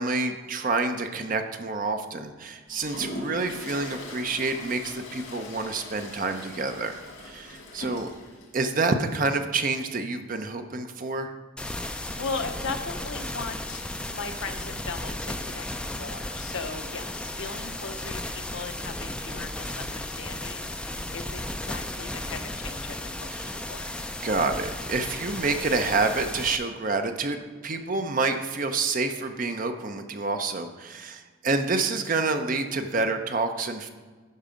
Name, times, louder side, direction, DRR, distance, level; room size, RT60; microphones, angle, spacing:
voice 1, 0.0-7.0 7.2-8.1 8.5-11.3 23.3-23.6 24.2-33.9, right 3 dB, 40° right, 7 dB, 0.6 m, -28 dB
Toilet flush, 2.7-8.5, left 2 dB, 90° left, 2.0 m, -40 dB
sound 1, 11.6-26.6, left 1 dB, 5° left, 0.3 m, -35 dB
voice 2, 12.2-23.9, left 4 dB, 70° left, 8 dB, 0.7 m, -38 dB
11.0 x 4.7 x 5.1 m, 1.4 s
head